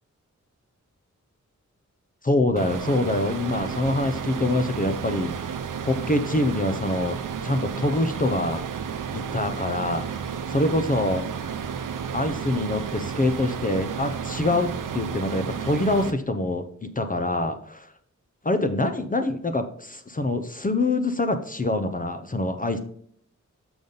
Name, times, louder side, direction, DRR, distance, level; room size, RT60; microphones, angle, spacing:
voice 1, 2.2-5.6 5.8-7.2 7.4-8.6 9.1-11.3 12.1-17.9 18.4-22.8, left 2 dB, 25° left, 8 dB, 0.6 m, -25 dB
sound 1, 2.6-16.1, right 7 dB, 80° right, 0.7 m, -32 dB
6.9 x 5.3 x 3.9 m, 0.62 s
wide cardioid pair, 75°, 31 cm